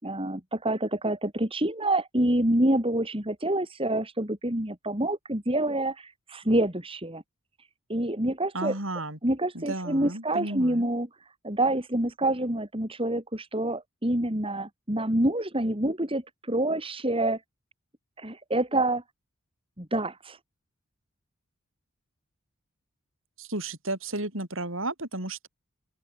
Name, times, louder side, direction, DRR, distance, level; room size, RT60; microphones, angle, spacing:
voice 1, 0.0-7.2 7.9-8.7 9.2-11.1 11.4-16.2 16.5-17.4 18.2-19.0 19.8-20.4, right 1 dB, 25° right, 3.6 m, -27 dB
voice 2, 8.5-9.2 9.5-10.9 23.4-25.5, right 2 dB, 65° right, 7.0 m, -33 dB
open air
head